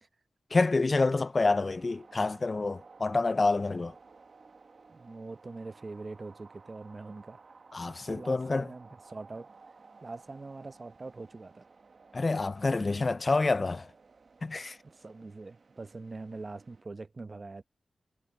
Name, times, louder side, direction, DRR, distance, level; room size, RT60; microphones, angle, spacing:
voice 1, 0.5-3.9 7.7-8.7 12.1-13.9 14.4-14.8, left 3 dB, 45° left, 0.5 m, -28 dB
sound 1, 1.0-16.8, right 4 dB, 60° right, 1.7 m, -56 dB
voice 2, 4.9-7.5 8.1-9.5 10.0-11.7 12.8-12.9 14.8-17.6, right 3 dB, 45° right, 0.9 m, -43 dB
cardioid pair, 60°, 0 cm